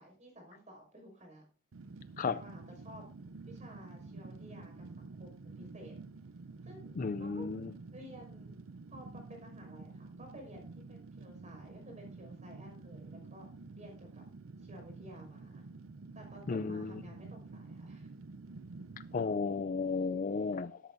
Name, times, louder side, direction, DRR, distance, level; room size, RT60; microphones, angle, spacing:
voice 1, 0.0-1.4 2.2-3.0 3.4-6.0 6.6-7.5 7.9-8.5 8.9-13.5 13.8-14.2 14.6-15.7 16.1-18.1, equal, 35° right, 5.6 m, -53 dB
Fire, 1.7-19.2, right 3 dB, 80° right, 0.6 m, -49 dB
voice 2, 7.0-7.7 16.5-16.9 19.1-20.8, left 4 dB, 40° left, 0.4 m, -33 dB
13.0 x 12.5 x 2.7 m
head